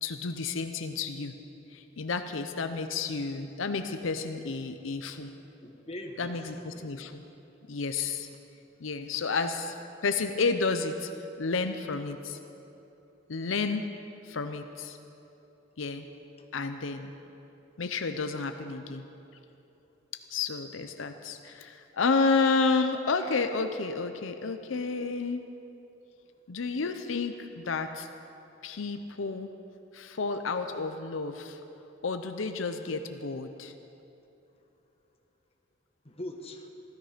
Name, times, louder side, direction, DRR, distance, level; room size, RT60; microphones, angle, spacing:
voice 1, 0.0-1.3 1.7-5.3 6.2-7.2 7.7-8.3 8.8-9.7 10.0-11.1 11.4-12.4 13.3-13.9 14.3-15.0 15.8-16.1 16.5-17.1 17.8-19.0 20.3-25.4 26.5-28.1 28.6-29.5 29.9-31.6 32.0-33.7, left 4 dB, 90° left, 8 dB, 0.7 m, -31 dB
voice 2, 5.6-6.9 16.4-16.5 17.9-18.1 36.0-36.7, left 1 dB, 30° left, 2 dB, 1.3 m, -42 dB
15.5 x 13.0 x 5.1 m, 2.9 s
head